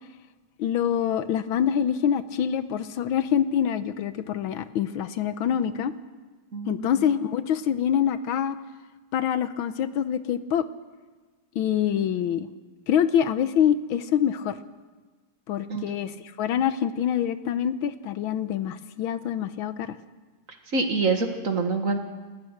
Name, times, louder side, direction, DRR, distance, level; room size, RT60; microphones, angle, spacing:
voice 1, 0.6-5.9 6.7-8.6 9.1-10.6 11.5-12.5 12.9-14.6 15.5-16.1 16.4-20.0, left 9 dB, 80° left, 12 dB, 1.6 m, -25 dB
voice 2, 6.5-6.9 15.7-15.9 20.7-22.0, right 3 dB, 40° right, 5 dB, 1.8 m, -26 dB
28.5 x 14.5 x 6.5 m, 1.3 s
omnidirectional pair, 2.2 m